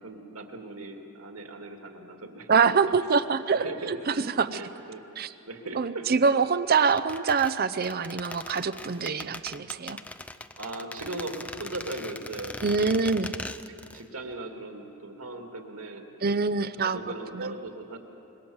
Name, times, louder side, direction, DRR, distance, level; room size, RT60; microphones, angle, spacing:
voice 1, 0.0-2.6 3.5-4.2 4.5-5.0 5.5-6.1 6.3-6.4 10.6-13.0 13.7-16.4 16.8-18.0, right 2 dB, 90° right, 3 dB, 2.4 m, -39 dB
voice 2, 2.5-4.0 4.3-4.6 5.2-5.3 5.7-10.0 12.6-13.3 16.2-17.0 17.3-17.5, right 5 dB, 45° right, 13 dB, 0.6 m, -25 dB
sound 1, 6.9-14.1 14.3-14.4, left 2 dB, 5° left, 0.5 m, -40 dB
26.0 x 22.0 x 7.2 m, 2.8 s
head